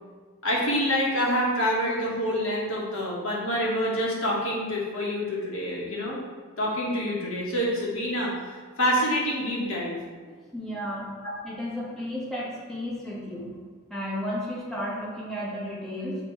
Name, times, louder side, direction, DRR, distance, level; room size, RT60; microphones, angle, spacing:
voice 1, 0.4-6.2 6.6-8.4 8.8-10.0, equal, 70° left, -4 dB, 1.5 m, -26 dB
voice 2, 10.2-11.1 11.4-13.5 13.9-16.2, equal, ahead, -7 dB, 1.2 m, -33 dB
7.5 x 3.0 x 4.5 m, 1.5 s
head